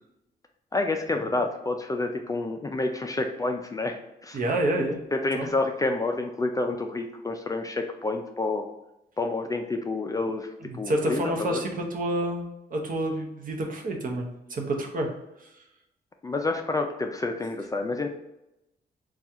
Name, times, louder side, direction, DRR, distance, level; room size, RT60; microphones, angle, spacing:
voice 1, 0.7-4.4 5.1-8.6 9.2-10.5 10.8-11.6 16.2-18.1, left 2 dB, 20° left, 4 dB, 0.3 m, -29 dB
voice 2, 4.3-5.0 5.3-5.5 10.6-15.1 15.4-15.6, right 1 dB, 50° right, 2 dB, 0.8 m, -29 dB
4.2 x 2.4 x 3.5 m, 0.90 s
cardioid pair, 105°, 18 cm